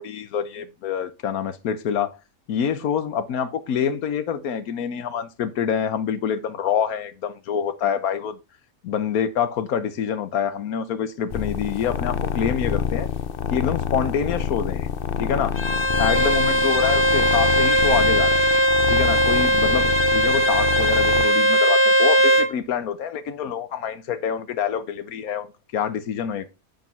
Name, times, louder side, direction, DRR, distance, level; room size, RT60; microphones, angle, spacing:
voice 1, 0.0-2.2 2.5-8.4 8.8-13.1 13.5-14.9 15.2-15.6 16.0-18.4 18.9-25.5 25.7-26.5, left 8 dB, 90° left, 1.3 m, -26 dB
sound 1, 11.3-21.3, left 8 dB, 50° left, 0.8 m, -27 dB
Bowed string instrument, 15.6-22.5, right 1 dB, 20° left, 1.1 m, -19 dB
10.5 x 5.4 x 5.4 m
omnidirectional pair, 1.5 m